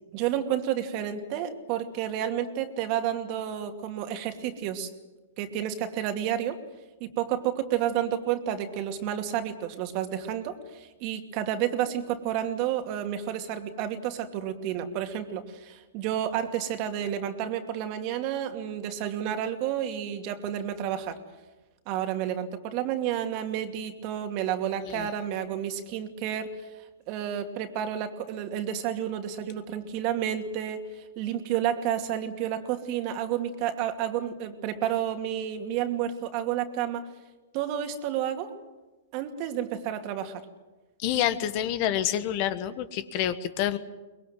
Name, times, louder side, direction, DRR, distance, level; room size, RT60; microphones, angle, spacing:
voice 1, 0.1-4.9 5.4-6.6 7.0-21.2 21.9-26.5 27.1-30.8 31.2-37.1 37.5-38.5 39.1-40.4, right 10 dB, 45° right, 6 dB, 2.5 m, -30 dB
voice 2, 41.0-43.8, left 11 dB, 45° left, 13 dB, 1.3 m, -28 dB
23.5 x 21.0 x 7.7 m, 1.2 s
hypercardioid pair, 115°, 0 cm